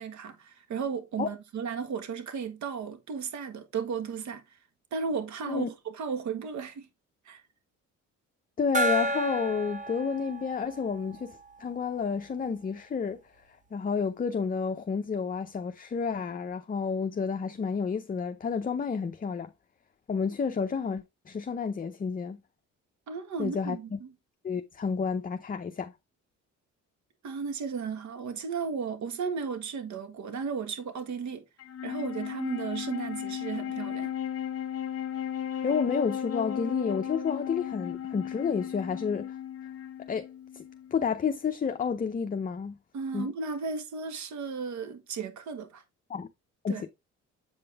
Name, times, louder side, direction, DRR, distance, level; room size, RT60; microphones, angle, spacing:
voice 1, 0.0-4.4 4.9-6.9 7.2-7.4 23.1-24.1 27.2-31.4 31.8-34.1 42.9-45.8 46.7-46.8, right 5 dB, 70° right, 1.6 m, -34 dB
voice 2, 8.6-13.2 13.7-19.5 20.1-22.4 23.4-24.0 24.4-25.9 35.6-39.4 40.1-40.3 40.5-40.6 40.9-42.8 43.1-43.3 46.1-46.3 46.6-46.9, left 6 dB, 30° left, 0.6 m, -30 dB
Gong, 8.7-12.0, right 1 dB, 25° right, 1.1 m, -32 dB
Wind instrument woodwind instrument, 31.6-41.1, left 9 dB, 50° left, 0.9 m, -35 dB
7.9 x 5.2 x 3.5 m
cardioid pair, 90°, 30 cm